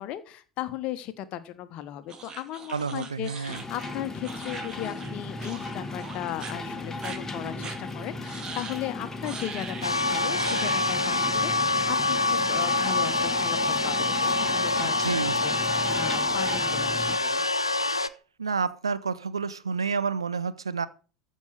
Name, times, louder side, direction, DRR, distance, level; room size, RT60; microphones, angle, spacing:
voice 1, 0.0-15.1 15.4-17.4, left 13 dB, 45° left, 12 dB, 1.3 m, -36 dB
sound 1, 2.1-5.1 5.4-5.7 6.0-6.5 7.0-7.2 7.6-7.8 8.2-8.8 9.2-9.9 10.3-10.9, right 5 dB, 30° right, 2.3 m, -40 dB
voice 2, 2.7-3.6 14.7-15.4 18.4-20.9, right 5 dB, 80° right, 16 dB, 0.7 m, -30 dB
sound 2, 3.5-17.2, left 2 dB, 15° left, 2.0 m, -36 dB
sound 3, 9.8-18.1, left 2 dB, 85° left, 0.5 m, -26 dB
14.0 x 5.4 x 6.5 m, 0.37 s
figure-of-eight pair, 75°, 3 cm